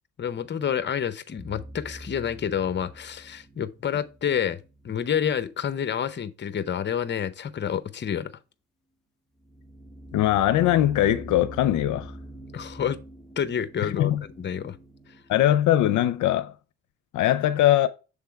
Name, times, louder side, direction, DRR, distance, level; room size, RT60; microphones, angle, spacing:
voice 1, 0.2-4.6 4.8-8.3 12.5-13.0 13.4-14.1 14.4-14.8, left 8 dB, 35° left, 0.7 m, -28 dB
sound 1, 1.4-5.5 9.4-16.3, right 1 dB, ahead, 0.9 m, -45 dB
voice 2, 10.1-12.1 13.8-14.2 15.3-16.5 17.1-17.9, left 12 dB, 80° left, 0.5 m, -21 dB
7.0 x 3.5 x 4.5 m
cardioid pair, 90°, 30 cm